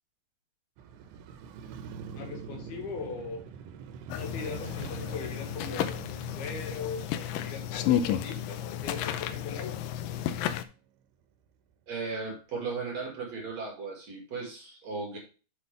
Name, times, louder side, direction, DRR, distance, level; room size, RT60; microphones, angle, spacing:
Motorcycle, 0.8-10.9 11.2-11.3, right 6 dB, 85° right, 2.8 m, -46 dB
voice 1, 2.1-3.5 4.2-9.9, left 5 dB, 70° left, 2 dB, 3.7 m, -40 dB
sound 1, 4.1-10.6, left 10 dB, 85° left, 2.0 m, -32 dB
voice 2, 11.9-15.2, right 4 dB, 45° right, 0 dB, 3.2 m, -36 dB
7.1 x 6.9 x 3.3 m, 0.35 s
omnidirectional pair, 4.6 m